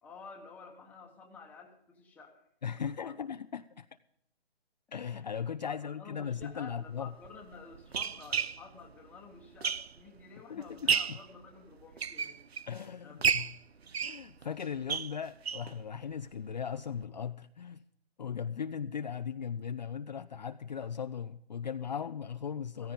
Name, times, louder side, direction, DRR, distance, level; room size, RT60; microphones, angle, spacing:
voice 1, 0.0-2.5 2.8-3.2 5.1-12.4 13.0-13.3 13.8-13.9 22.8-22.9, left 4 dB, 5° left, 1 dB, 1.3 m, -51 dB
voice 2, 2.6-3.9 4.9-7.1 10.5-11.2 12.7-13.5 14.0-17.8 18.2-22.9, left 7 dB, 45° left, 10 dB, 0.5 m, -38 dB
sound 1, 6.3-6.5 7.2-10.2 10.6-11.3 11.8-12.8 13.2-15.7 16.1-16.2 16.5-16.6 16.9-17.0, right 7 dB, 80° right, 0.8 m, -32 dB
15.5 x 15.0 x 3.8 m, 0.76 s
hypercardioid pair, 155°, 31 cm